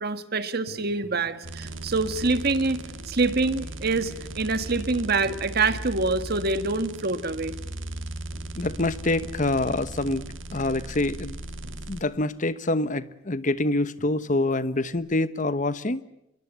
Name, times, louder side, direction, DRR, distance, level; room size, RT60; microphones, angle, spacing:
voice 1, 0.0-2.8 3.1-7.5, right 3 dB, 50° right, 11 dB, 1.6 m, -26 dB
Tambourine, 0.7-6.4 6.7-6.8 7.1-7.6 7.9-8.0 8.3-12.4 14.0-15.0, equal, 85° right, 6.8 m, -49 dB
sound 1, 1.4-12.0, right 1 dB, 70° right, 2.4 m, -37 dB
voice 2, 8.6-11.4 11.9-16.0, left 2 dB, 40° left, 14 dB, 1.1 m, -26 dB
26.0 x 22.0 x 8.2 m, 0.83 s
head